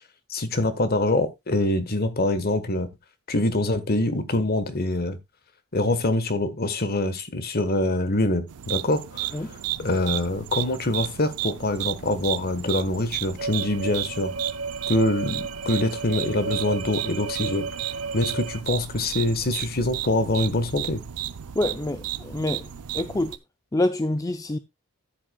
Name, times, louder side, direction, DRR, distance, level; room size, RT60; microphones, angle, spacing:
voice 1, 0.3-2.9 3.3-5.2 5.7-9.3 9.8-14.3 14.9-17.7 18.1-21.0, left 1 dB, 45° left, 1.2 m, -25 dB
sound 1, 8.5-23.4, right 13 dB, 85° right, 0.5 m, -34 dB
sound 2, 13.4-18.6, right 4 dB, 65° right, 1.0 m, -33 dB
voice 2, 21.6-22.7 22.9-23.4 23.7-24.6, left 1 dB, 15° left, 0.4 m, -26 dB
13.5 x 7.7 x 2.3 m
head